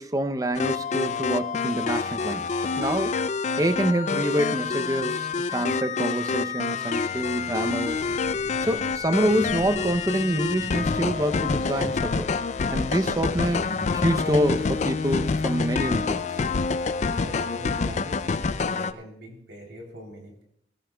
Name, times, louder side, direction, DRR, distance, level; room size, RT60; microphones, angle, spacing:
voice 1, 0.0-2.5 2.8-3.1 3.6-8.0 8.6-12.3 12.7-13.7 13.9-16.3, right 1 dB, 20° right, 8 dB, 0.6 m, -26 dB
sound 1, 0.6-18.9, left 4 dB, 40° left, 0.4 m, -27 dB
sound 2, 7.5-15.5, left 1 dB, 65° left, 4.0 m, -42 dB
voice 2, 17.2-20.4, equal, 80° right, 0 dB, 3.3 m, -42 dB
18.0 x 14.5 x 2.3 m, 0.73 s
head